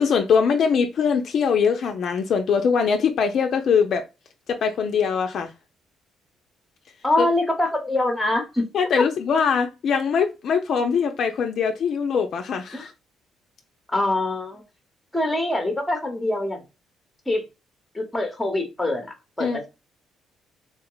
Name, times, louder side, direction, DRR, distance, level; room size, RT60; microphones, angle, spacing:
voice 1, 0.0-4.0 4.5-5.5 7.2-7.3 8.7-12.9 19.4-19.7, left 6 dB, 55° left, 0.5 m, -22 dB
voice 2, 7.0-8.7 12.7-12.9 13.9-14.6 15.1-16.6 17.3-17.4 17.9-19.7, left 2 dB, 5° left, 0.9 m, -24 dB
3.7 x 2.2 x 3.8 m
cardioid pair, 140°, 0 cm